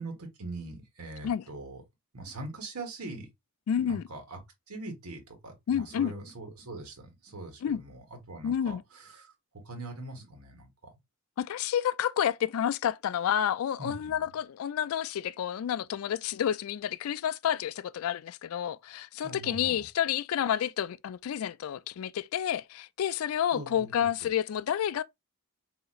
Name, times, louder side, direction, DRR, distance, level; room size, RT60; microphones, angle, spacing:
voice 1, 0.0-1.8 2.1-3.3 3.7-4.4 4.7-9.3 9.6-10.9 13.8-14.2 19.2-19.9 23.5-24.3, right 2 dB, 85° right, 1.4 m, -42 dB
voice 2, 3.7-4.0 5.7-6.1 7.6-7.8 8.4-8.8 11.4-25.0, left 9 dB, 70° left, 0.3 m, -30 dB
4.1 x 2.8 x 2.4 m
head